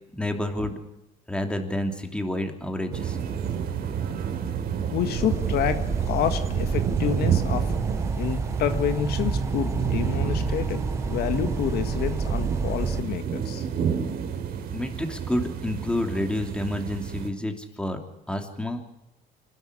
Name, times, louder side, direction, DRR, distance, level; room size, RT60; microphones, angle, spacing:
voice 1, 0.1-0.8 1.3-3.2 14.7-18.0 18.3-18.8, left 1 dB, 5° left, 4 dB, 3.1 m, -29 dB
sound 1, 2.9-17.3, right 8 dB, 65° right, 3.1 m, -30 dB
voice 2, 4.9-7.7 8.2-10.8 11.1-13.7, left 9 dB, 70° left, 8 dB, 1.7 m, -28 dB
sound 2, 5.1-13.0, right 4 dB, 15° right, 0.9 m, -29 dB
26.5 x 12.5 x 8.4 m, 0.91 s
cardioid pair, 110°, 17 cm